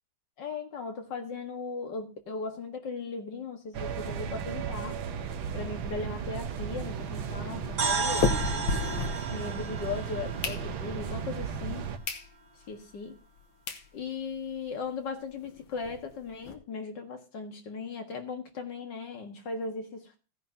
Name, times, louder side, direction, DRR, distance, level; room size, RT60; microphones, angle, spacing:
voice 1, 0.4-5.0 5.5-8.5 9.3-11.8 12.7-13.2 13.9-20.2, left 4 dB, 60° left, 2.1 m, -37 dB
sound 1, 3.7-12.0, right 7 dB, 75° right, 1.7 m, -35 dB
sound 2, 5.8-9.8 10.2-11.1 11.6-11.7 12.0-12.3 12.7-12.8 13.4-13.5 13.7-13.9 14.3-14.4 14.6-14.7 15.0-15.1 15.4-16.5, left 4 dB, 80° left, 2.0 m, -34 dB
sound 3, 7.8-11.7, right 4 dB, 50° right, 2.3 m, -34 dB
15.5 x 10.0 x 2.8 m
omnidirectional pair, 2.3 m